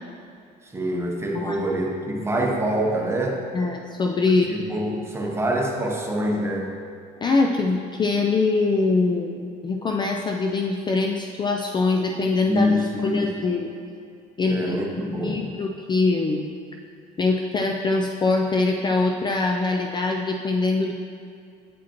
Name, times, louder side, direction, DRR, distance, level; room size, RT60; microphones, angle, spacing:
voice 1, 0.6-3.4 4.3-6.7 12.5-13.4 14.5-15.5, equal, 15° right, 0 dB, 0.8 m, -25 dB
voice 2, 3.5-4.5 7.2-13.7 14.4-14.8 15.2-16.5 17.2-20.9, left 3 dB, 25° left, 2 dB, 0.3 m, -23 dB
8.3 x 4.8 x 2.9 m, 2.4 s
cardioid pair, 110°, 17 cm